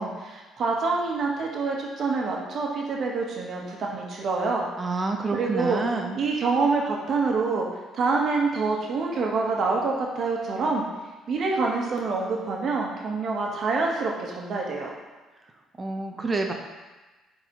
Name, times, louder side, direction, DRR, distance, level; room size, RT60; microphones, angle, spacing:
voice 1, 0.0-4.7 5.3-5.8 6.1-7.7 7.9-10.8 11.3-14.9, right 4 dB, 50° right, -1 dB, 1.2 m, -26 dB
voice 2, 4.8-6.2 15.8-16.5, right 3 dB, 25° right, 3 dB, 0.6 m, -28 dB
9.3 x 3.9 x 3.0 m, 1.2 s
cardioid pair, 120°, 0 cm